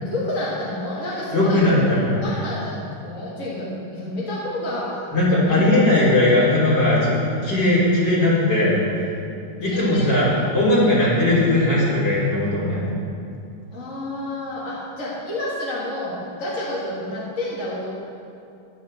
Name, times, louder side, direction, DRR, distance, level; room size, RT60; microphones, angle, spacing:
voice 1, 0.0-1.6 2.2-2.7 3.0-5.1 5.4-5.7 9.7-10.2 13.7-17.9, left 1 dB, 45° left, -7 dB, 2.3 m, -29 dB
voice 2, 1.3-2.1 5.1-8.8 9.6-12.9, left 1 dB, 70° left, -8 dB, 4.3 m, -18 dB
13.0 x 11.5 x 4.3 m, 2.6 s
omnidirectional pair, 2.0 m